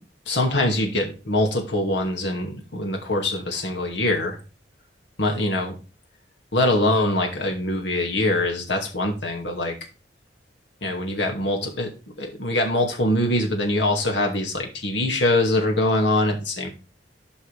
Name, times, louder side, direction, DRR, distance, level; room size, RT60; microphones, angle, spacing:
voice 1, 0.3-4.4 5.2-5.7 6.5-9.7 10.8-11.9 12.2-16.7, left 1 dB, 80° left, 1 dB, 2.3 m, -23 dB
12.5 x 5.5 x 3.5 m, 0.33 s
head